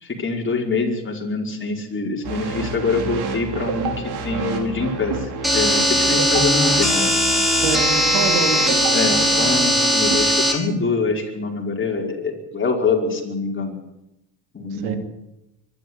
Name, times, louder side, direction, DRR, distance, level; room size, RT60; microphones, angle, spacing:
voice 1, 0.0-7.1 8.9-13.7 14.5-15.0, left 3 dB, 25° left, 1 dB, 5.2 m, -24 dB
sound 1, 2.2-10.2, right 4 dB, 55° right, 4.6 m, -29 dB
sound 2, 5.4-10.5, equal, ahead, 5.1 m, -19 dB
voice 2, 7.6-9.3 14.7-15.0, right 7 dB, 85° right, 7 dB, 2.9 m, -27 dB
23.5 x 12.0 x 9.8 m, 0.89 s
supercardioid pair, 100°, 46 cm